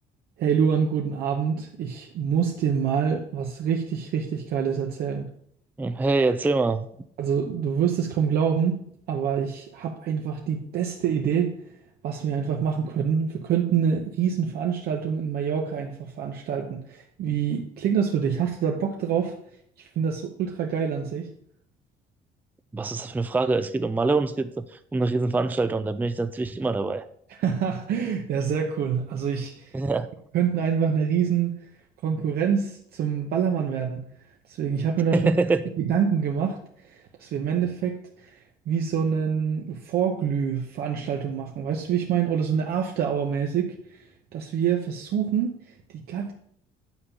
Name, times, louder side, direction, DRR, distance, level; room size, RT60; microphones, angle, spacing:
voice 1, 0.4-5.3 7.2-8.8 9.1-11.6 12.0-19.3 19.8-21.3 27.4-29.7 30.3-31.5 32.0-34.1 34.5-35.3 35.8-38.3 38.7-44.1 44.3-46.3, right 7 dB, 70° right, 2 dB, 1.0 m, -26 dB
voice 2, 5.8-6.9 22.7-24.6 24.9-27.0 29.7-30.1 35.1-35.6, right 3 dB, 10° right, 10 dB, 0.4 m, -24 dB
9.5 x 3.7 x 6.9 m, 0.66 s
cardioid pair, 110°, 17 cm